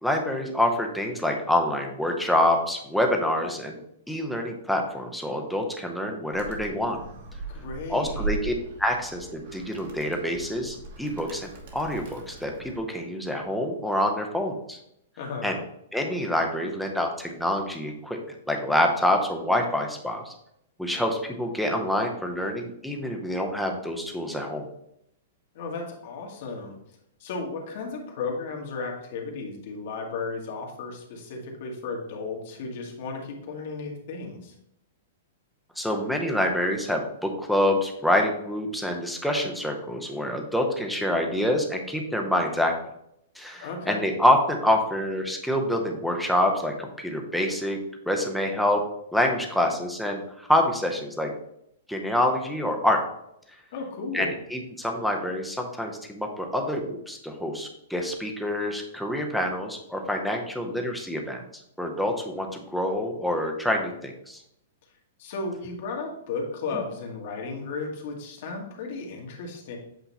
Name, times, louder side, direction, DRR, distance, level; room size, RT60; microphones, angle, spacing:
voice 1, 0.0-3.8 4.1-7.0 7.9-8.5 8.8-14.8 15.4-15.6 15.9-18.2 18.5-20.3 20.8-24.6 35.8-42.7 43.4-47.8 48.1-48.8 49.1-51.3 51.9-53.0 54.1-61.4 61.8-64.4 66.7-66.8, left 1 dB, ahead, 1 dB, 0.6 m, -26 dB
Animal, 6.3-12.8, right 4 dB, 50° right, 1.3 m, -38 dB
voice 2, 7.5-8.3 15.2-15.6 25.5-26.8 27.2-34.5 43.6-44.0 53.7-54.3 65.2-69.8, left 4 dB, 45° left, 0 dB, 1.4 m, -34 dB
7.9 x 2.9 x 4.0 m, 0.78 s
hypercardioid pair, 170°, 0 cm